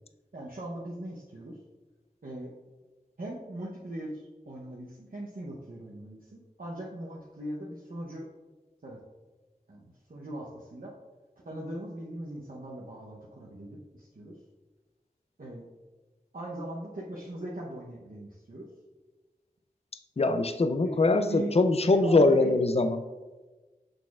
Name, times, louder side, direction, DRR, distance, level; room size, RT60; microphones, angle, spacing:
voice 1, 0.3-1.6 2.2-2.5 3.2-8.3 8.8-9.0 9.7-10.9 11.5-14.3 15.4-15.7 16.3-18.7 20.7-21.5 21.9-22.5, right 1 dB, 75° right, -5 dB, 0.8 m, -39 dB
voice 2, 20.2-23.0, left 3 dB, 45° left, 8 dB, 0.4 m, -23 dB
6.4 x 6.3 x 2.4 m, 1.3 s
wide cardioid pair, 45°, 15 cm